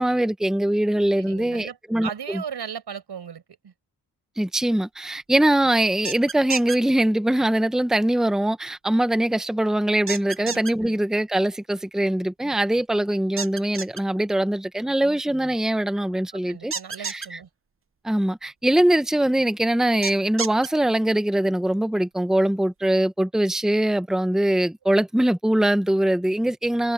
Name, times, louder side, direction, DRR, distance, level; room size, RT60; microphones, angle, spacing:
voice 1, 0.0-2.4 4.4-16.7 17.0-17.4 18.0-26.9, right 1 dB, ahead, 0.9 m, -22 dB
voice 2, 1.2-3.7 10.4-11.0 16.5-17.5, right 7 dB, 90° right, 5.6 m, -37 dB
sound 1, 6.0-6.8 10.1-10.7 13.4-14.0 16.7-17.3 20.0-20.7, right 5 dB, 35° right, 0.9 m, -30 dB
wide cardioid pair, 125°, 39 cm